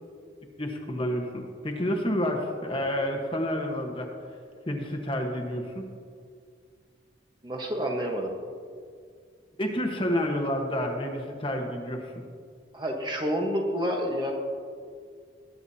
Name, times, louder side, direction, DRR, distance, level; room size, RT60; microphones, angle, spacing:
voice 1, 0.6-4.1 4.7-5.9 9.6-12.2, equal, 25° left, 2 dB, 1.2 m, -29 dB
voice 2, 7.4-8.3 12.7-14.3, equal, 25° right, 1 dB, 1.2 m, -29 dB
21.0 x 9.2 x 2.8 m, 2.2 s
head